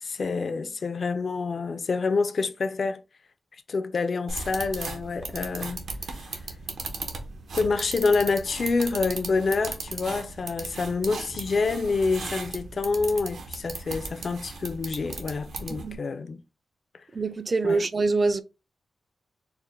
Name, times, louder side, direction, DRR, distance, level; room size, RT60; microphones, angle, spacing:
voice 1, 0.0-3.0 3.7-5.8 7.5-16.4 17.6-17.8, left 4 dB, 50° left, 0.4 m, -27 dB
sound 1, 4.3-16.0, right 3 dB, 80° right, 0.8 m, -37 dB
voice 2, 15.7-16.0 17.1-18.4, right 3 dB, 35° right, 0.3 m, -25 dB
4.3 x 2.1 x 3.5 m
wide cardioid pair, 140°, 0 cm